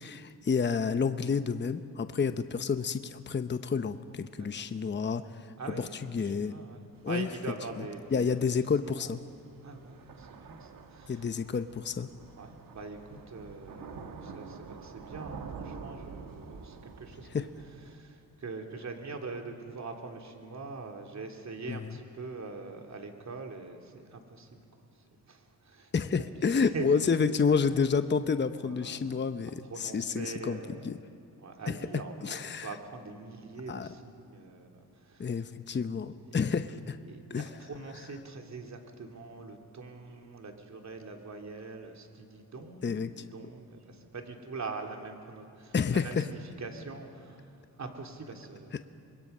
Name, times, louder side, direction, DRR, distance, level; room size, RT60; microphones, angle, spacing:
voice 1, 0.0-6.5 7.0-7.3 7.8-7.9 8.1-9.2 11.1-12.1 17.3-17.5 21.7-22.0 25.9-29.5 29.8-30.6 30.8-31.0 31.7-31.8 32.2-32.7 33.7-33.9 35.2-37.0 37.3-37.5 42.8-43.2 45.7-46.2, left 5 dB, 30° left, 10 dB, 0.9 m, -29 dB
voice 2, 5.6-8.5 8.8-9.1 9.6-11.3 12.4-17.5 17.9-25.9 26.6-26.9 28.6-29.1 29.7-30.9 31.4-35.4 36.3-36.5 37.0-48.8, right 4 dB, 50° right, 3 dB, 2.9 m, -43 dB
Thunder / Rain, 7.0-17.9, right 5 dB, 65° right, 1.8 m, -47 dB
25.5 x 21.5 x 5.6 m, 2.4 s
cardioid pair, 65°, 37 cm